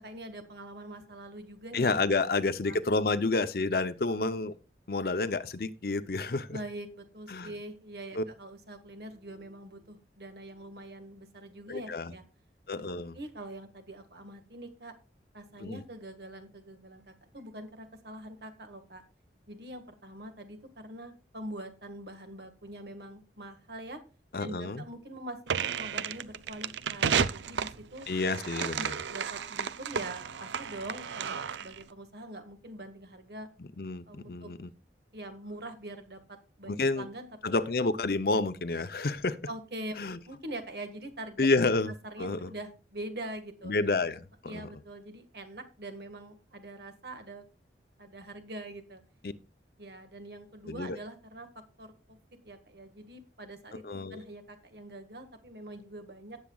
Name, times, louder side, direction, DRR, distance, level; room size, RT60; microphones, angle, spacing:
voice 1, 0.0-1.8 2.3-2.8 6.5-12.2 12.9-14.9 15.3-19.0 19.5-24.0 24.4-28.1 28.8-33.5 34.1-34.5 35.1-37.3 39.5-41.5 42.1-43.7 44.4-47.4 48.0-49.0 49.8-51.5 51.8-52.2 52.4-56.4, right 1 dB, 65° right, 1.7 m, -44 dB
voice 2, 1.7-4.5 4.9-6.6 7.3-7.5 8.1-8.2 11.7-12.1 12.7-13.2 15.6-15.8 24.3-24.8 28.1-28.9 33.8-34.7 36.7-37.1 37.4-39.4 40.0-40.2 41.4-41.9 42.2-42.5 43.6-44.2 44.5-44.7 49.2-49.3 50.7-51.0 53.8-54.2, left 3 dB, 55° left, 0.6 m, -29 dB
sound 1, 25.5-31.8, right 7 dB, 85° right, 0.5 m, -32 dB
17.5 x 7.4 x 2.3 m
head